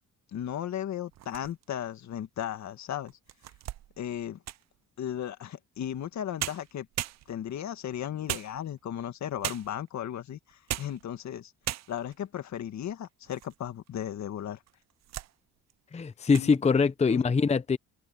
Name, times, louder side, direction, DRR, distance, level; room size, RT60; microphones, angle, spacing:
voice 1, 0.3-3.2 4.0-4.4 5.0-6.9 7.3-11.5 11.9-14.6 16.4-16.6 17.1-17.2, left 10 dB, 65° left, 2.0 m, -36 dB
sound 1, 1.1-1.8 2.4-2.5 3.1-4.8 6.0-6.1 6.4-7.6 8.3-9.0 9.4-9.9 10.5-11.0 11.3-11.4 11.6-12.2 12.8-13.6 13.9-14.0 14.7-15.3 15.7-15.9 16.2-16.5, right 14 dB, 60° right, 0.6 m, -38 dB
voice 2, 15.9-17.8, left 5 dB, 20° left, 0.7 m, -23 dB
open air
cardioid pair, 90°, 30 cm